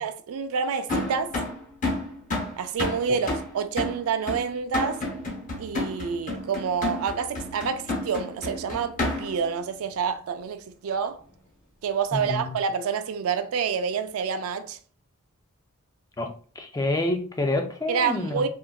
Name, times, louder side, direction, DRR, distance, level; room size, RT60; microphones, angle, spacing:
voice 1, 0.0-1.3 2.6-5.0 5.6-11.2 11.8-14.8 17.9-18.5, right 6 dB, 75° right, 0.3 m, -28 dB
sound 1, 0.9-9.5, left 2 dB, 40° left, 0.7 m, -31 dB
voice 2, 12.1-12.5 16.2-16.3 16.6-18.5, left 2 dB, 15° left, 0.4 m, -27 dB
3.8 x 2.1 x 2.3 m
head